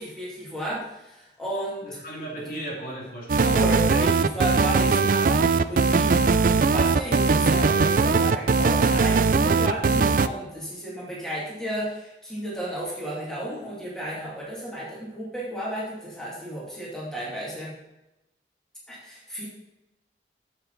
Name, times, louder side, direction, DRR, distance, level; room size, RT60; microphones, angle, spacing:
voice 1, 0.0-2.0 3.4-17.7 18.9-19.5, right 1 dB, 5° left, -7 dB, 2.5 m, -33 dB
voice 2, 1.8-3.5 9.6-9.8, right 1 dB, 55° left, -4 dB, 2.9 m, -36 dB
sound 1, 3.3-10.3, right 4 dB, 50° right, 0.4 m, -20 dB
9.5 x 7.5 x 4.1 m, 0.93 s
head